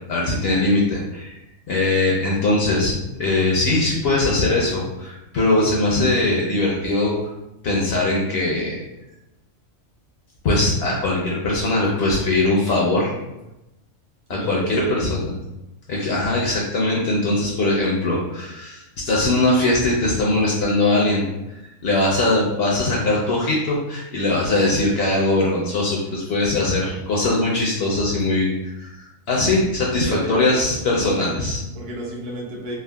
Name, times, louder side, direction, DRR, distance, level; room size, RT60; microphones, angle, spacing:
voice 1, 0.1-1.4 1.7-7.2 7.6-8.8 10.4-13.1 14.3-15.2 15.9-21.3 21.8-31.6, left 2 dB, 65° left, -3 dB, 0.7 m, -21 dB
voice 2, 14.3-15.2 17.7-17.8 30.1-30.4 31.2-31.3 31.7-32.8, right 2 dB, 70° right, -3 dB, 0.9 m, -31 dB
3.5 x 2.0 x 2.2 m, 0.94 s
omnidirectional pair, 1.4 m